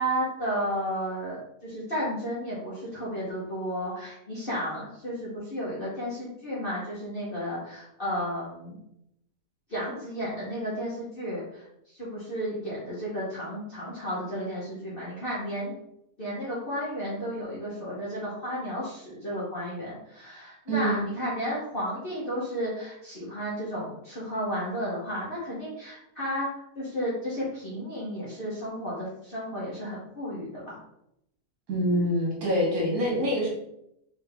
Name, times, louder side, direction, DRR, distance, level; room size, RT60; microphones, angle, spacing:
voice 1, 0.0-8.8 9.7-11.7 11.9-15.7 16.2-26.5 26.7-30.8, equal, 40° left, -8 dB, 1.3 m, -33 dB
voice 2, 20.7-21.0 31.7-33.5, equal, 75° right, -3 dB, 1.8 m, -25 dB
4.0 x 3.5 x 3.5 m, 0.80 s
omnidirectional pair, 1.6 m